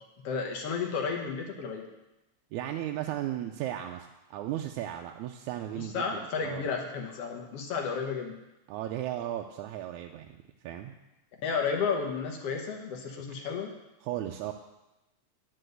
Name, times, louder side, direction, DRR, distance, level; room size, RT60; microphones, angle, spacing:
voice 1, 0.2-1.8 5.8-8.3 11.4-13.7, left 5 dB, 65° left, 1 dB, 1.9 m, -32 dB
voice 2, 2.5-6.0 6.4-6.6 8.7-10.3 10.6-10.9 14.0-14.5, right 12 dB, 90° right, 3 dB, 2.0 m, -35 dB
9.9 x 5.5 x 7.8 m, 0.98 s
omnidirectional pair, 3.3 m